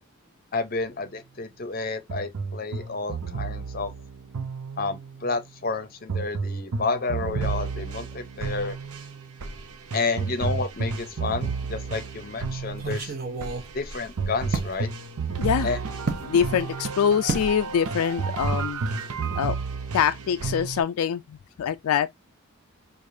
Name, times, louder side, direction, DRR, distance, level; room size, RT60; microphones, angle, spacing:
voice 1, 0.5-3.9 4.8-8.8 9.9-13.1 13.7-14.9 15.6-15.8, left 4 dB, 40° left, 0.6 m, -30 dB
sound 1, 2.1-5.2 6.1-20.8, right 4 dB, 90° right, 0.7 m, -31 dB
sound 2, 10.8-11.4 11.8-11.9 12.7-14.8 16.1-16.3 17.3-17.6 17.9-18.2 18.5-18.6, right 3 dB, 40° right, 0.7 m, -32 dB
voice 2, 15.4-15.7 16.2-18.8 19.4-19.6 19.9-22.1, left 8 dB, 85° left, 0.3 m, -24 dB
4.8 x 2.5 x 2.5 m
head